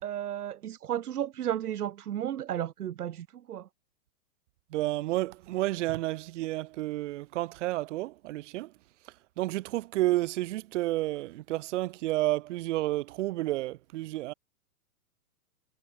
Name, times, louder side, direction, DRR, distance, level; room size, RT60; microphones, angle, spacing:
voice 1, 0.0-3.7, right 11 dB, 75° right, 2.3 m, -33 dB
voice 2, 4.7-8.7 9.4-14.3, right 17 dB, 50° right, 3.9 m, -31 dB
hypercardioid pair, 145°, 46 cm